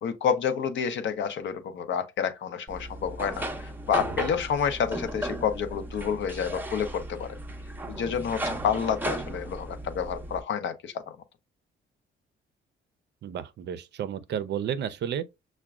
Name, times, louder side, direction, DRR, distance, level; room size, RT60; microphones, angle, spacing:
voice 1, 0.0-7.3 7.9-10.9, left 7 dB, 70° left, 0.7 m, -29 dB
sound 1, 2.7-10.4, right 1 dB, 10° right, 0.5 m, -35 dB
voice 2, 13.2-15.3, right 9 dB, 60° right, 0.5 m, -32 dB
5.8 x 2.2 x 2.3 m
cardioid pair, 90°, 20 cm